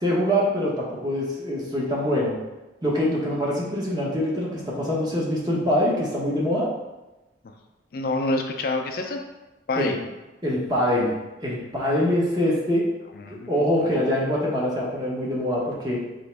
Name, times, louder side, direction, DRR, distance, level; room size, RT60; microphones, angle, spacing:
voice 1, 0.0-2.4 2.8-6.7 9.8-10.0 10.4-11.1 11.4-12.9 13.5-16.0, equal, 20° right, -5 dB, 0.9 m, -24 dB
voice 2, 7.9-9.2 9.7-10.0 13.1-14.0, left 2 dB, 55° left, 3 dB, 0.4 m, -28 dB
4.3 x 3.0 x 3.3 m, 1.1 s
head